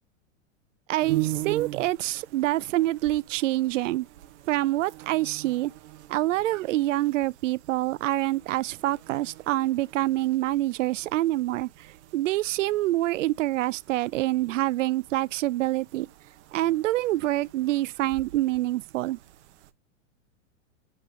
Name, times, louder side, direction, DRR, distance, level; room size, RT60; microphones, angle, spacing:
voice 1, 0.9-4.1 4.5-5.7 6.1-11.9 12.1-16.1 16.5-19.2, right 16 dB, 75° right, 0.5 m, -26 dB
sound 1, 1.0-19.7, right 16 dB, 60° right, 0.9 m, -42 dB
8.6 x 3.8 x 3.1 m
hypercardioid pair, 110°, 38 cm